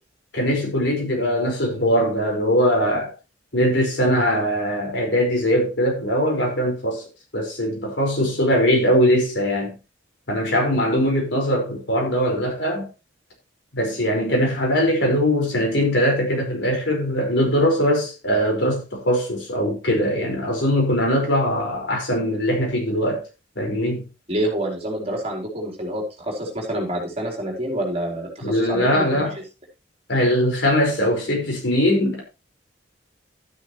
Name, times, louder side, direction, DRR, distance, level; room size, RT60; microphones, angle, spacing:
voice 1, 0.3-3.1 3.5-7.0 7.3-9.7 10.3-12.9 13.7-23.2 23.5-24.0 28.4-29.3 30.1-32.2, equal, 70° left, 5.1 m, -21 dB
voice 2, 24.3-29.2, right 1 dB, 35° right, 4.0 m, -27 dB
12.0 x 10.0 x 3.2 m
head